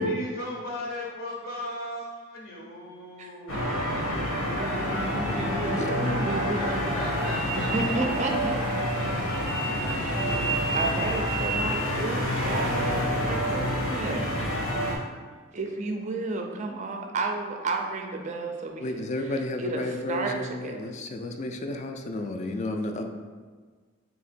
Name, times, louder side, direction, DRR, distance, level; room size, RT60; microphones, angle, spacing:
voice 1, 0.0-3.8 6.6-7.7, left 1 dB, 70° left, -3 dB, 0.7 m, -36 dB
voice 2, 3.2-3.6 3.9-4.1 4.4-7.0 7.5-8.6 8.9-9.0 10.7-14.3 15.5-19.0 19.6-19.8 20.1-20.3 20.6-20.9, right 3 dB, 35° right, 3 dB, 0.4 m, -32 dB
sound 1, 3.4-13.9 14.2-14.3, equal, 5° right, 0.7 m, -39 dB
sound 2, 3.5-15.0, equal, 85° left, 1.1 m, -28 dB
voice 3, 18.8-23.0, left 1 dB, 35° left, 5 dB, 0.3 m, -32 dB
3.6 x 2.8 x 4.2 m, 1.5 s
head